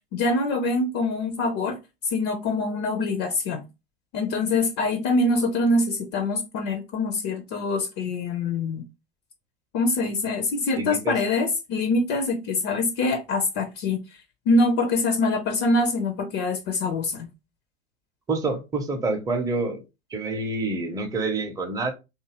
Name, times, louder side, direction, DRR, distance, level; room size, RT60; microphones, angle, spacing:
voice 1, 0.1-1.8 2.0-3.6 4.1-8.8 9.7-14.2 14.5-17.3, left 2 dB, 45° left, 0.5 m, -24 dB
voice 2, 10.7-11.2 18.3-19.8 20.1-21.9, right 3 dB, 10° right, 0.6 m, -27 dB
2.6 x 2.4 x 2.8 m
hypercardioid pair, 85°, 33 cm